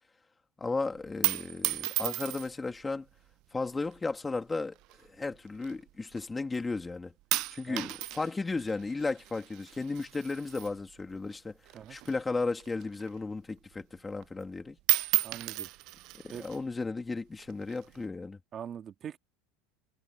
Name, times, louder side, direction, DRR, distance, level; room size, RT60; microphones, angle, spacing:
voice 1, 0.6-3.1 3.5-4.8 5.1-7.1 7.5-11.6 11.9-14.8 16.1-18.4, left 3 dB, 10° left, 2.8 m, -34 dB
sound 1, 1.0-2.7 3.5-4.0 4.8-6.2 6.5-6.9 7.3-11.4 11.6-13.3 13.7-13.8 14.1-14.5 14.8-16.6 17.4-18.0, right 19 dB, 50° right, 0.4 m, -34 dB
voice 2, 15.2-15.7 16.3-16.4 18.5-19.2, right 8 dB, 30° right, 2.0 m, -42 dB
supercardioid pair, 150°, 0 cm